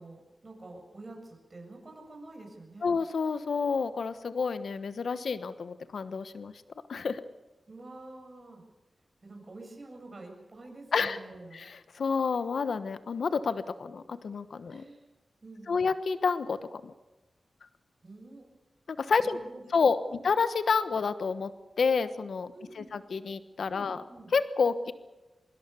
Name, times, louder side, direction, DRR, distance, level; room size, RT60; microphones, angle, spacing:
voice 1, 0.0-3.0 7.7-8.6 9.2-11.7 14.7-15.0 15.4-15.9 18.0-18.5 19.2-19.7 20.1-20.3 22.5-23.0 23.7-24.3, right 2 dB, 45° right, 2 dB, 7.5 m, -48 dB
voice 2, 2.8-6.5 6.9-7.2 10.9-11.2 11.5-14.8 15.7-16.6 16.8-16.9 18.9-19.4 19.7-20.0 20.2-21.5 21.8-24.0 24.3-24.9, left 5 dB, 80° left, 12 dB, 1.2 m, -29 dB
24.5 x 22.5 x 7.1 m, 1.1 s
wide cardioid pair, 75°, 0 cm